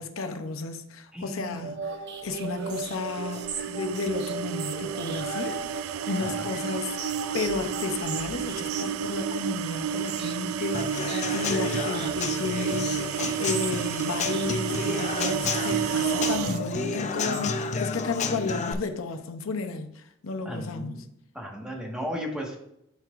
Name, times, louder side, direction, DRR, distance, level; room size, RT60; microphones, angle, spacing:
voice 1, 0.0-1.9 2.2-5.8 6.1-20.9, left 3 dB, 80° left, 0.6 m, -33 dB
voice 2, 1.1-1.7 6.2-6.5 20.4-21.1 21.3-22.6, equal, 5° right, 1.4 m, -35 dB
sound 1, 1.6-18.0, right 5 dB, 55° right, 0.8 m, -37 dB
sound 2, 2.7-16.6, right 9 dB, 90° right, 0.3 m, -32 dB
Human voice / Acoustic guitar / Drum, 10.7-18.7, left 5 dB, 35° left, 0.5 m, -31 dB
11.5 x 4.5 x 2.5 m
head